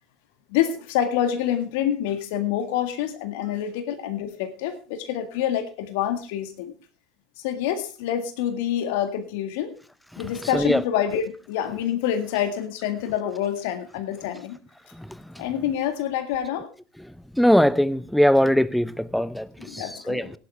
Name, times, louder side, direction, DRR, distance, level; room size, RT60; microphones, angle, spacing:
voice 1, 0.5-6.7 7.4-9.7 10.2-14.6 15.4-16.7 19.6-20.3, left 10 dB, 65° left, 1.8 m, -27 dB
voice 2, 17.4-19.5 19.7-20.3, equal, ahead, 0.8 m, -20 dB
17.0 x 11.0 x 3.4 m
hypercardioid pair, 75°, 0 cm